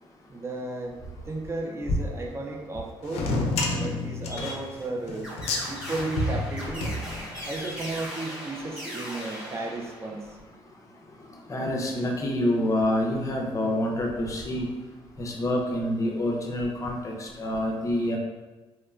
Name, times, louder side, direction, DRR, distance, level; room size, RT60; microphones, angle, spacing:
voice 1, 0.3-1.0 1.3-3.3 3.8-5.3 5.7-6.9 7.5-10.4, right 2 dB, 25° right, 1 dB, 0.4 m, -34 dB
sound 1, 3.1-7.6, left 2 dB, 85° left, 0.4 m, -30 dB
sound 2, 5.2-10.4, equal, 10° right, 0.8 m, -39 dB
voice 2, 7.3-7.7 11.5-14.7 15.2-18.2, left 1 dB, 30° left, 0 dB, 0.5 m, -27 dB
2.8 x 2.1 x 2.3 m, 1.2 s
cardioid pair, 105°, 10 cm